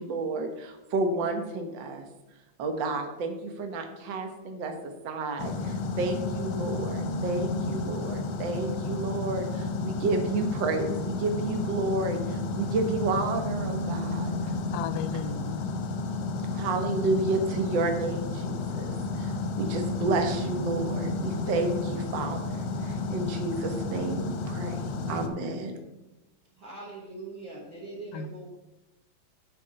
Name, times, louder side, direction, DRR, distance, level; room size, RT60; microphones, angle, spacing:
voice 1, 0.0-2.0 2.6-14.5 16.5-25.8, right 3 dB, 70° right, 4 dB, 1.1 m, -31 dB
sound 1, 5.4-25.3, left 3 dB, 65° left, 1.6 m, -32 dB
voice 2, 14.7-15.8 28.1-28.6, left 5 dB, 85° left, 13 dB, 2.1 m, -35 dB
voice 3, 26.6-28.6, right 2 dB, 45° right, -5 dB, 1.8 m, -42 dB
8.4 x 5.3 x 6.4 m, 0.99 s
omnidirectional pair, 3.7 m